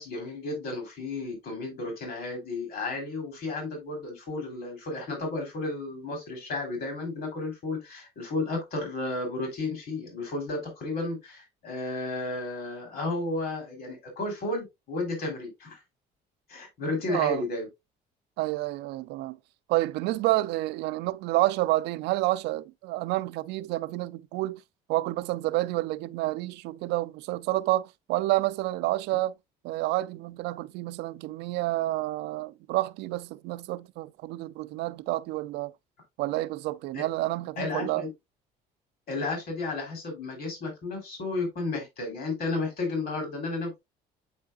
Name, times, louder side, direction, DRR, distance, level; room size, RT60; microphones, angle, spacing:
voice 1, 0.0-15.8 16.5-17.7 36.9-37.0 37.6-38.1 39.1-43.8, left 2 dB, 65° left, 3.4 m, -33 dB
voice 2, 17.1-17.4 18.4-19.4 19.7-24.6 24.9-29.3 29.6-35.7 36.2-38.0, right 17 dB, 85° right, 0.5 m, -29 dB
8.7 x 4.6 x 2.4 m
cardioid pair, 110°, 17 cm